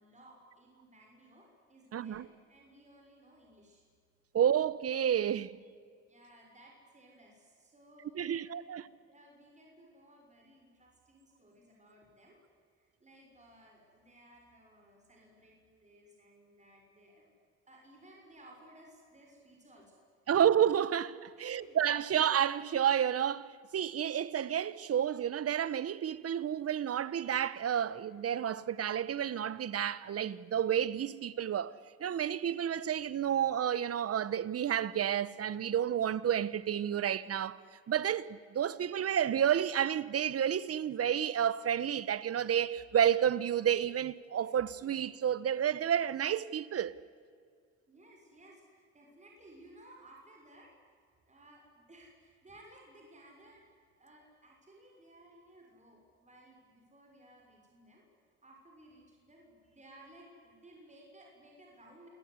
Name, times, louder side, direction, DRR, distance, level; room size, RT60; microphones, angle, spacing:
voice 1, 0.0-2.2 2.5-3.8 6.0-12.4 12.8-17.3 17.7-20.1 21.3-22.2 47.9-51.0 51.3-53.7 54.0-58.1 58.4-62.1, right 1 dB, 25° right, 6.6 m, -58 dB
voice 2, 1.9-2.3 4.3-5.6 8.2-8.8 20.3-31.7 32.0-37.6 37.9-47.0, right 9 dB, 50° right, 1.1 m, -30 dB
28.0 x 18.0 x 9.8 m
cardioid pair, 90°, 30 cm